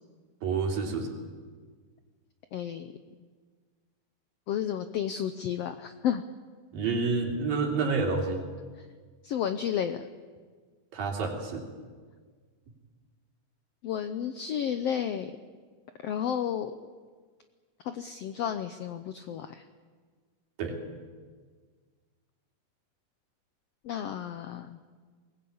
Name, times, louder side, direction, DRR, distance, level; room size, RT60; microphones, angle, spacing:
voice 1, 0.4-1.1 6.7-8.4 10.9-11.7 20.6-20.8, right 4 dB, 85° right, 0 dB, 4.8 m, -29 dB
voice 2, 2.5-2.9 4.5-6.2 9.2-10.1 13.8-15.3 16.0-16.7 17.8-19.6 23.8-24.8, left 9 dB, 85° left, 9 dB, 1.4 m, -32 dB
22.0 x 19.5 x 8.7 m, 1.5 s
omnidirectional pair, 3.9 m